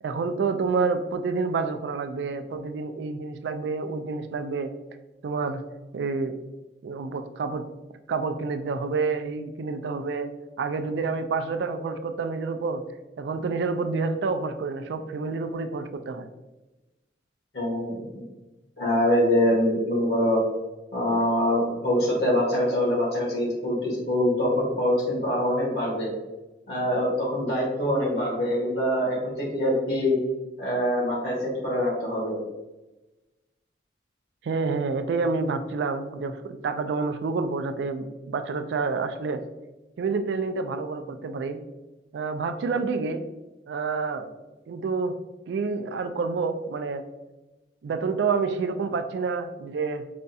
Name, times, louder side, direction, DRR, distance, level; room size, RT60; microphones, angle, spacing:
voice 1, 0.0-4.7 5.2-5.6 5.9-6.3 6.8-7.6 8.1-10.3 10.6-12.8 13.2-16.3 34.4-39.4 40.0-41.6 42.1-43.2 43.7-44.3 44.7-45.2 45.5-47.0 47.8-50.0, right 4 dB, 80° right, 8 dB, 0.3 m, -28 dB
voice 2, 17.5-18.2 18.8-20.4 20.9-26.1 26.7-30.2 30.6-32.4, left 1 dB, 65° left, -4 dB, 1.3 m, -24 dB
5.0 x 2.3 x 2.6 m, 1.1 s
head